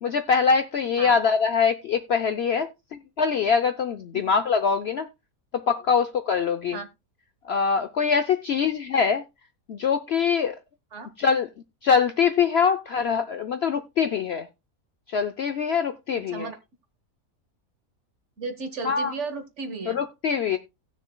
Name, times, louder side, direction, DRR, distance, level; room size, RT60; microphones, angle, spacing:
voice 1, 0.0-5.1 5.5-6.8 7.5-9.2 9.7-10.6 11.2-11.5 11.8-14.5 15.1-16.5 18.8-19.1 19.9-20.6, left 6 dB, 60° left, 0.7 m, -23 dB
voice 2, 18.4-20.0, right 3 dB, 55° right, 1.5 m, -34 dB
18.0 x 6.4 x 2.2 m
omnidirectional pair, 1.6 m